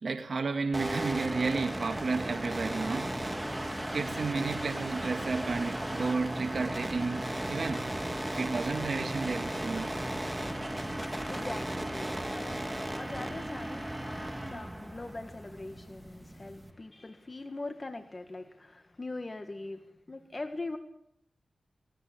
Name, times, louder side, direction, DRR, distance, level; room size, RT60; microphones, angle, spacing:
voice 1, 0.0-7.9 8.3-10.0, right 4 dB, 60° right, 2.1 m, -32 dB
sound 1, 0.7-16.7, right 1 dB, 10° right, 2.3 m, -36 dB
voice 2, 11.1-20.8, left 2 dB, 35° left, 1.9 m, -42 dB
19.0 x 18.5 x 8.7 m
cardioid pair, 70°, 0 cm